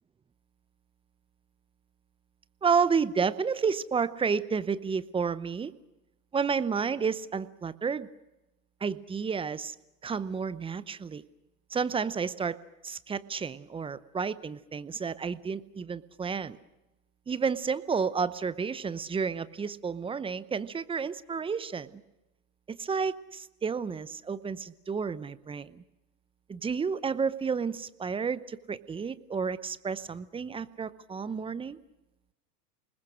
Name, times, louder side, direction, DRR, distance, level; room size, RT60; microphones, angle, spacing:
voice 1, 2.6-5.7 6.3-8.1 8.8-9.8 10.0-11.2 11.7-12.6 12.8-16.6 17.3-22.0 22.7-25.8 26.5-31.8, right 5 dB, 10° right, 16 dB, 0.7 m, -31 dB
28.0 x 20.5 x 6.3 m, 0.98 s
hypercardioid pair, 105°, 47 cm